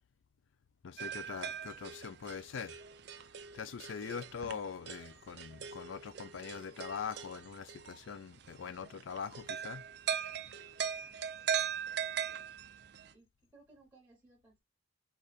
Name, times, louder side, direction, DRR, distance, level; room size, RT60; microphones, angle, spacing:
voice 1, 0.8-2.8 3.5-9.8, left 6 dB, 70° left, 0.4 m, -42 dB
sound 1, 1.0-13.1, right 8 dB, 55° right, 0.4 m, -40 dB
voice 2, 11.9-12.5 13.1-13.3 13.5-14.6, right 2 dB, 10° right, 1.3 m, -63 dB
5.0 x 2.4 x 4.1 m
head